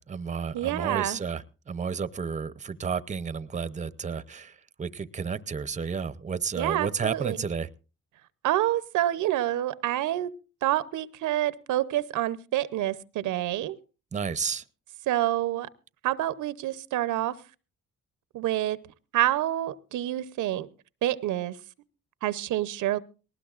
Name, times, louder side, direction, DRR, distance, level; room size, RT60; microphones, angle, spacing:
voice 1, 0.0-7.7 14.1-14.6, right 6 dB, 25° right, 0.7 m, -32 dB
voice 2, 0.5-1.2 6.5-7.4 8.4-10.3 10.6-13.8 15.1-15.7 16.0-17.4 18.3-18.8 19.1-20.7 21.0-21.6 22.2-23.0, right 13 dB, 80° right, 0.8 m, -27 dB
19.5 x 18.5 x 2.5 m
cardioid pair, 90°, 30 cm